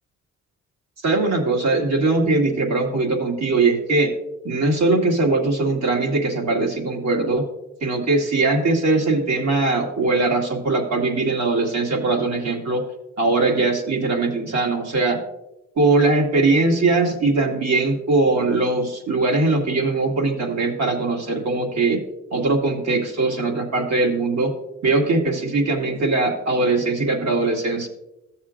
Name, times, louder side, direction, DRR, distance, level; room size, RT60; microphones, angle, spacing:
voice 1, 1.0-4.1 4.4-7.4 7.8-12.8 13.2-15.2 15.8-22.0 22.3-24.5 24.8-27.9, right 3 dB, 65° right, 0 dB, 2.1 m, -20 dB
14.0 x 7.1 x 2.5 m, 0.91 s
cardioid pair, 90°, 30 cm